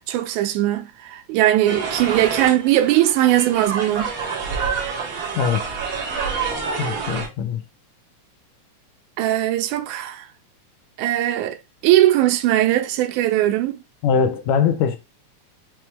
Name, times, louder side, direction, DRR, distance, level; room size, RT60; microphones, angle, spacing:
voice 1, 0.0-4.1 9.2-10.3 11.0-13.8, right 14 dB, 85° right, 2.0 m, -19 dB
sound 1, 1.6-7.3, right 5 dB, 60° right, 1.3 m, -27 dB
voice 2, 6.8-7.6 14.0-15.0, left 7 dB, 80° left, 1.7 m, -21 dB
5.9 x 2.1 x 3.2 m
omnidirectional pair, 3.4 m